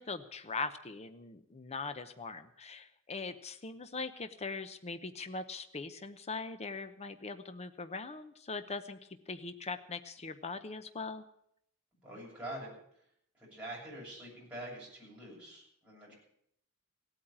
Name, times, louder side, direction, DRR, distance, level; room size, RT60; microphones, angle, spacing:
voice 1, 0.0-9.0 9.3-11.2, left 4 dB, 30° left, 9 dB, 0.8 m, -41 dB
voice 2, 12.0-12.7 13.4-16.1, right 1 dB, 5° right, -6 dB, 7.7 m, -45 dB
17.0 x 8.9 x 8.6 m, 0.72 s
head